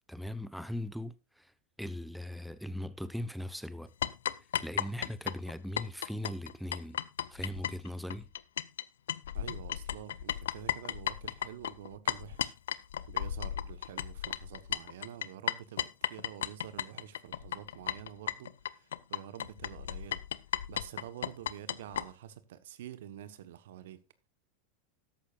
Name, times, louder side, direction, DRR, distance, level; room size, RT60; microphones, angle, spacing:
voice 1, 0.0-1.5 1.8-3.9 4.6-7.0 7.3-8.3, left 1 dB, ahead, 1.0 m, -39 dB
sound 1, 4.0-8.8 9.1-22.1, left 10 dB, 75° left, 0.6 m, -35 dB
voice 2, 9.3-12.5 13.1-20.2 20.7-24.0, right 11 dB, 70° right, 1.2 m, -48 dB
14.0 x 11.5 x 2.5 m
hypercardioid pair, 90°, 0 cm